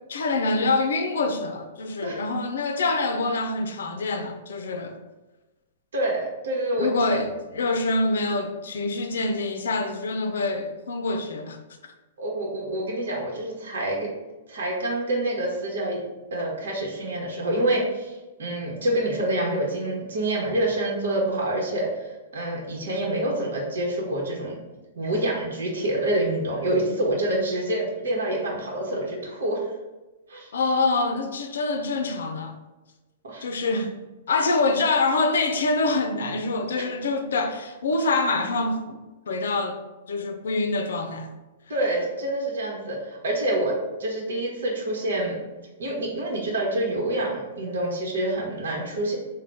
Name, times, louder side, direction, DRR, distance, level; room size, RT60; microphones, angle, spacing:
voice 1, 0.1-5.0 6.8-11.6 30.5-32.5 33.4-34.0 34.3-39.0 39.3-39.8 40.1-41.3, left 3 dB, 80° left, 0.5 m, -25 dB
voice 2, 5.9-7.2 12.2-14.1 14.5-16.0 16.3-24.6 25.0-29.7 30.3-30.5 33.2-33.4 36.7-36.8 41.7-45.4 45.8-49.1, right 1 dB, 80° right, 1.0 m, -27 dB
3.8 x 2.2 x 3.4 m
hypercardioid pair, 130°, 0 cm